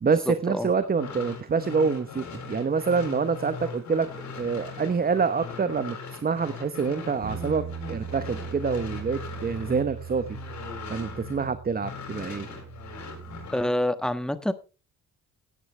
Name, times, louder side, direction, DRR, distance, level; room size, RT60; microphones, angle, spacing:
voice 1, 0.0-4.1 4.4-10.4 10.9-12.5, right 5 dB, 30° right, 11 dB, 1.0 m, -26 dB
sound 1, 0.8-11.5 11.8-13.7, left 5 dB, 70° left, 7.0 m, -40 dB
Bass guitar, 7.2-13.5, right 8 dB, 70° right, 4.1 m, -40 dB
voice 2, 13.5-14.5, left 1 dB, ahead, 11 dB, 1.3 m, -27 dB
16.5 x 10.0 x 3.3 m, 0.30 s
cardioid pair, 90°, 30 cm